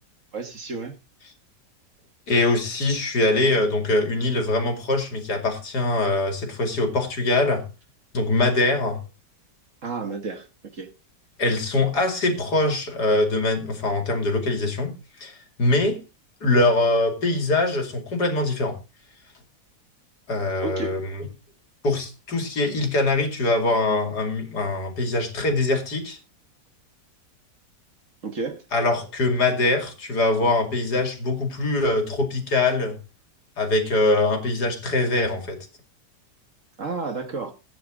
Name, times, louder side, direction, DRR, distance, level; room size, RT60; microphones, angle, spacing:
voice 1, 0.3-0.9 9.8-10.5 10.7-10.9 20.6-20.9 28.2-28.6 36.8-37.5, right 3 dB, 50° right, 1.8 m, -31 dB
voice 2, 2.3-7.6 8.1-9.0 11.4-14.9 15.2-16.0 16.4-18.8 20.3-21.0 21.8-26.2 28.7-33.0 33.6-35.6, left 2 dB, 65° left, 3.0 m, -23 dB
15.5 x 9.5 x 3.7 m
omnidirectional pair, 1.9 m